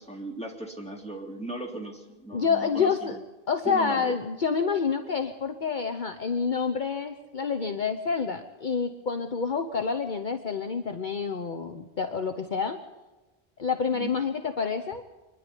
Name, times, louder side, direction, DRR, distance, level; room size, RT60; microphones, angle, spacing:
voice 1, 0.0-3.2 3.6-4.1 13.9-14.1, right 1 dB, 5° left, 0 dB, 3.2 m, -37 dB
voice 2, 2.3-3.2 3.5-12.8 13.6-15.0, left 5 dB, 50° left, 7 dB, 1.1 m, -28 dB
25.0 x 11.0 x 10.0 m, 1.1 s
omnidirectional pair, 1.1 m